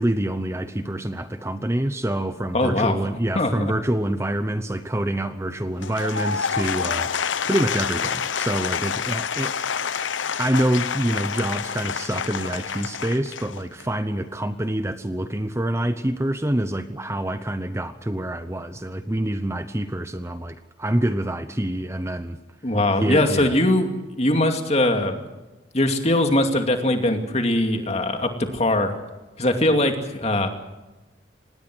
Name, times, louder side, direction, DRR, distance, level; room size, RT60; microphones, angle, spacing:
voice 1, 0.0-9.5 9.9-22.4 23.0-23.5, right 1 dB, 15° right, 10 dB, 0.8 m, -26 dB
voice 2, 2.5-3.0 3.3-3.7 22.6-25.2 25.7-29.0 29.4-30.5, left 1 dB, 35° left, 5 dB, 2.5 m, -21 dB
Applause / Crowd, 5.7-14.0, left 7 dB, 85° left, 0.8 m, -28 dB
25.5 x 19.5 x 6.2 m, 1.1 s
head